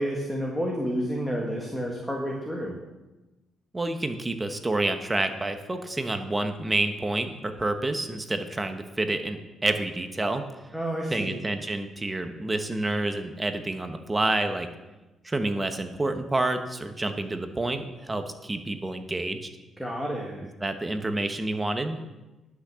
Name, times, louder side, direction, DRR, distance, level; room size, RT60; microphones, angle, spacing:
voice 1, 0.0-2.8 10.7-11.4 19.8-20.4, equal, ahead, -1 dB, 1.8 m, -30 dB
voice 2, 3.7-10.4 11.1-14.7 15.2-19.5 20.6-22.0, right 2 dB, 20° right, 7 dB, 1.0 m, -28 dB
11.5 x 6.2 x 6.9 m, 1.1 s
cardioid pair, 90°, 0 cm